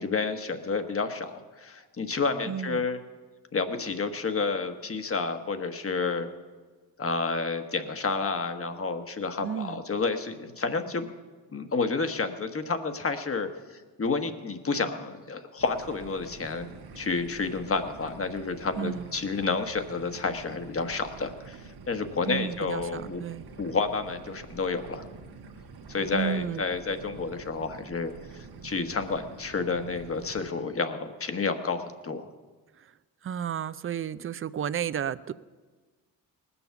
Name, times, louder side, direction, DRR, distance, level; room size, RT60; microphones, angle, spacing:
voice 1, 0.0-3.0 3.5-6.3 7.0-11.1 11.5-23.2 23.6-25.1 25.9-32.3, left 4 dB, 35° left, 8 dB, 1.2 m, -30 dB
voice 2, 2.5-2.9 9.4-9.8 18.8-19.0 22.3-23.4 26.1-26.6 32.8-32.9 33.2-35.4, right 9 dB, 35° right, 16 dB, 0.5 m, -32 dB
sound 1, 15.6-30.5, right 5 dB, 75° right, 1.4 m, -47 dB
19.0 x 7.1 x 7.0 m, 1.4 s
cardioid pair, 85°, 39 cm